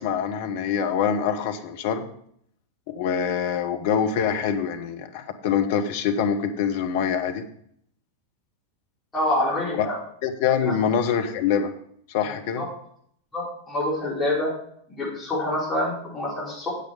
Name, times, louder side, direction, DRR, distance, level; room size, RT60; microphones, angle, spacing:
voice 1, 0.0-2.0 2.9-7.4 9.8-9.9 10.2-11.7 12.1-12.6, left 7 dB, 50° left, 7 dB, 1.1 m, -25 dB
voice 2, 9.1-10.0 10.6-10.8 12.6-12.7 13.3-14.5 14.9-16.7, left 1 dB, 15° left, -7 dB, 5.2 m, -26 dB
9.3 x 8.1 x 5.0 m, 0.66 s
figure-of-eight pair, 90°, 0 cm